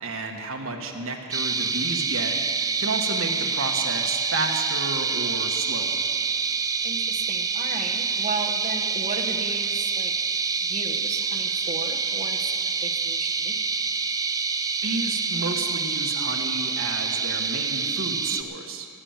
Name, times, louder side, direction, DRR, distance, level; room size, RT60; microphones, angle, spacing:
voice 1, 0.0-6.0 14.8-18.9, right 3 dB, 65° right, 2 dB, 1.4 m, -32 dB
sound 1, 1.3-18.4, right 5 dB, 15° right, 0.4 m, -27 dB
voice 2, 6.8-10.1 10.6-12.5 12.8-13.9, right 3 dB, 30° right, 3 dB, 1.1 m, -35 dB
16.0 x 8.9 x 7.3 m, 2.3 s
head